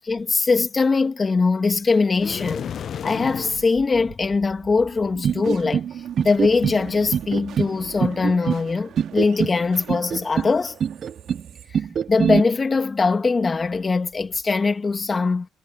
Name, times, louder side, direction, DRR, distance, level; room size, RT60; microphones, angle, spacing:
voice 1, 0.0-2.7 3.0-5.8 6.2-10.8 12.1-15.5, left 4 dB, 30° left, 1.6 m, -21 dB
sound 1, 2.2-3.7, left 8 dB, 60° left, 0.3 m, -31 dB
sound 2, 3.5-12.4, right 10 dB, 75° right, 1.9 m, -41 dB
sound 3, 5.2-5.9 6.2-6.8 7.1-7.7 8.0-8.6 9.0-9.6 9.9-10.5 10.8-11.4 11.7-12.4, right 7 dB, 55° right, 0.3 m, -23 dB
cardioid pair, 90°, 0 cm